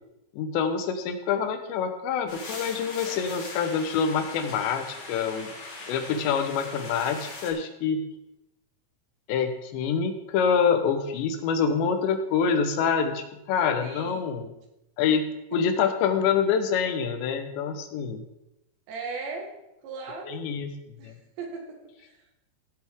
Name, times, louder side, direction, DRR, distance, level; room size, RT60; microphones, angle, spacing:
voice 1, 0.3-5.5 5.9-8.0 9.3-14.5 15.0-18.2 20.3-20.7 21.0-21.1, left 6 dB, 80° left, 7 dB, 3.2 m, -26 dB
sound 1, 2.3-7.5, left 2 dB, 60° left, 4.9 m, -40 dB
voice 2, 13.8-14.3 18.9-19.5 19.8-20.4 21.0-22.4, right 4 dB, 80° right, 1 dB, 3.9 m, -38 dB
16.5 x 8.0 x 3.6 m, 0.89 s
omnidirectional pair, 5.0 m